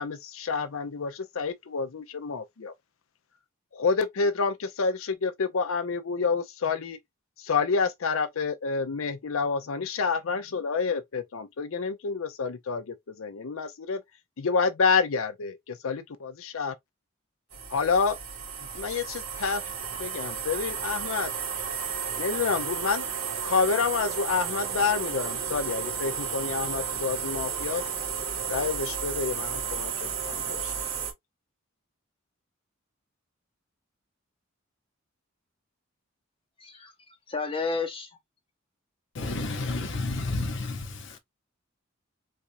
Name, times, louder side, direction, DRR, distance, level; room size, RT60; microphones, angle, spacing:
voice 1, 0.0-2.7 3.7-7.0 7.4-14.0 14.4-15.6 15.8-16.7 17.7-18.2 18.7-19.6 20.0-21.3 22.2-23.1 23.4-27.8 28.5-30.7, left 5 dB, 75° left, 0.6 m, -28 dB
sound 1, 17.5-31.1, right 7 dB, 70° right, 2.0 m, -33 dB
voice 2, 36.6-36.9 37.3-38.1 41.1-41.2, left 4 dB, 25° left, 0.8 m, -31 dB
voice 3, 39.2-41.2, left 2 dB, 60° left, 0.9 m, -31 dB
4.1 x 2.5 x 2.6 m
head